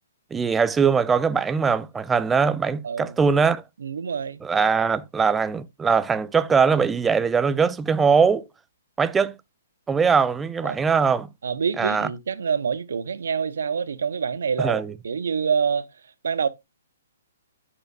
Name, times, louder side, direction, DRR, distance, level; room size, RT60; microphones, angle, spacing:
voice 1, 0.3-3.6 4.4-8.5 9.0-9.3 9.9-11.3 11.8-12.1 14.6-14.9, right 5 dB, 10° right, 0.5 m, -21 dB
voice 2, 2.8-3.2 3.8-4.4 10.6-10.8 11.4-15.9 16.2-16.5, right 6 dB, 70° right, 0.9 m, -26 dB
10.5 x 7.0 x 2.4 m
hypercardioid pair, 130°, 0 cm